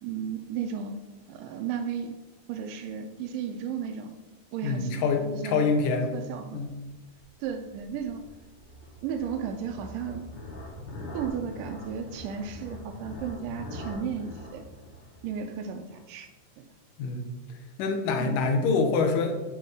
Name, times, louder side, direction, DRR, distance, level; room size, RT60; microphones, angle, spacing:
voice 1, 0.0-1.0 1.3-2.2 2.5-4.1 4.5-5.8 6.1-6.6 7.4-8.2 9.0-10.3 11.1-14.6 15.2-16.3 16.6-16.7 18.2-18.4, right 7 dB, 80° right, 5 dB, 2.0 m, -34 dB
voice 2, 4.6-6.1 6.5-6.7 17.0-17.4 17.8-19.3, left 4 dB, 80° left, 5 dB, 2.3 m, -25 dB
sound 1, 6.7-16.0, left 1 dB, 60° left, 2.2 m, -43 dB
6.6 x 4.2 x 4.7 m, 1.2 s
omnidirectional pair, 3.9 m